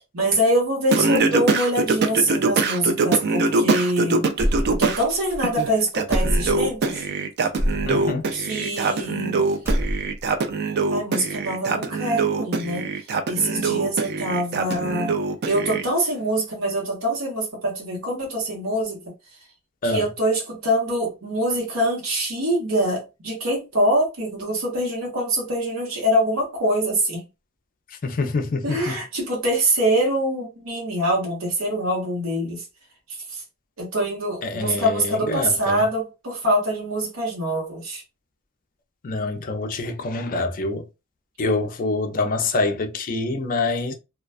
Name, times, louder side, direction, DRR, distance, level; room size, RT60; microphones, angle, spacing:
voice 1, 0.1-4.3 4.7-7.1 8.3-9.4 10.9-12.9 13.3-15.2 15.4-19.0 19.8-27.2 28.6-32.6 33.3-33.4 33.8-38.0, right 1 dB, 65° right, 1.0 m, -24 dB
Singing, 0.9-5.0 5.4-15.8, right 3 dB, 45° right, 0.3 m, -23 dB
sound 1, 4.4-5.0 5.3-5.4 6.1-6.7 7.6-7.9 8.7-9.3 9.5-10.3, equal, 10° right, 0.6 m, -24 dB
voice 2, 7.9-8.3 19.8-20.1 27.9-29.0 34.4-35.8 39.0-40.8 41.4-43.9, left 3 dB, 40° left, 0.4 m, -26 dB
2.4 x 2.2 x 2.3 m
head